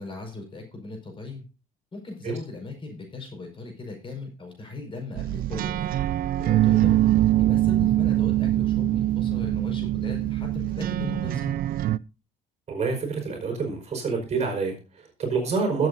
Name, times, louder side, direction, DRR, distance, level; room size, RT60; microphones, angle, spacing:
voice 1, 0.0-1.5 1.9-6.0 6.4-7.0 7.4-11.6, left 3 dB, 30° left, 2 dB, 5.2 m, -38 dB
sound 1, 5.2-12.0, right 14 dB, 60° right, 0.4 m, -23 dB
voice 2, 12.7-15.9, right 4 dB, 40° right, 2 dB, 5.1 m, -27 dB
21.0 x 7.9 x 2.7 m, 0.31 s
cardioid pair, 110°, 17 cm